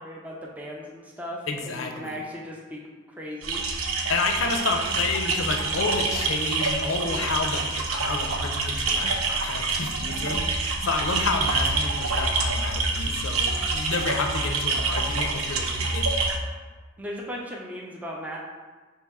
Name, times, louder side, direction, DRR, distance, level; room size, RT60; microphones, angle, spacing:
voice 1, 0.0-2.8 3.2-3.6 4.4-5.0 10.0-10.4 17.0-18.4, equal, 5° right, -3 dB, 0.4 m, -37 dB
voice 2, 1.5-2.2 4.1-16.1, left 3 dB, 75° left, 4 dB, 0.5 m, -30 dB
sound 1, 3.4-16.4, right 3 dB, 90° right, 0.5 m, -27 dB
5.5 x 2.7 x 3.5 m, 1.4 s
head